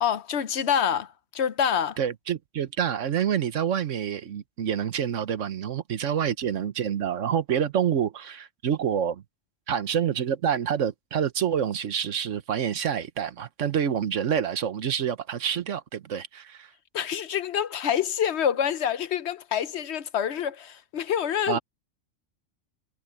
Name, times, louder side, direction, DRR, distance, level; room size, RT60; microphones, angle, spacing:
voice 1, 0.0-2.0 16.9-21.6, left 8 dB, 65° left, 0.9 m, -26 dB
voice 2, 2.0-9.2 9.7-16.7 21.5-21.6, right 8 dB, 75° right, 1.3 m, -27 dB
omnidirectional pair, 1.3 m